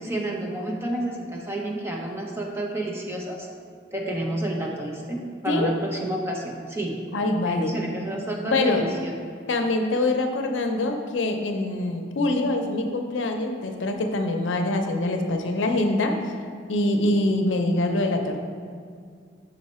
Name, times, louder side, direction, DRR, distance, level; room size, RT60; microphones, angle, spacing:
voice 1, 0.0-3.5 3.9-7.0 7.4-9.1, right 1 dB, 15° right, -1 dB, 0.7 m, -30 dB
voice 2, 7.1-7.7 8.4-8.9 9.5-16.1 16.7-18.4, left 2 dB, 90° left, 4 dB, 0.6 m, -24 dB
5.5 x 5.3 x 4.2 m, 2.1 s
head